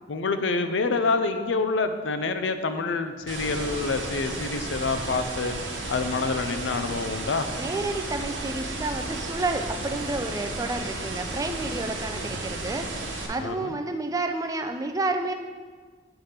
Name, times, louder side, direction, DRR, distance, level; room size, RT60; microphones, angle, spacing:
voice 1, 0.1-5.5 5.9-7.5 13.4-13.8, left 3 dB, 80° left, 9 dB, 0.5 m, -27 dB
sound 1, 3.3-13.3, right 2 dB, 85° right, 1.0 m, -33 dB
voice 2, 7.6-12.9 13.3-15.3, right 2 dB, 20° right, 6 dB, 0.3 m, -30 dB
7.9 x 3.4 x 5.7 m, 1.5 s
head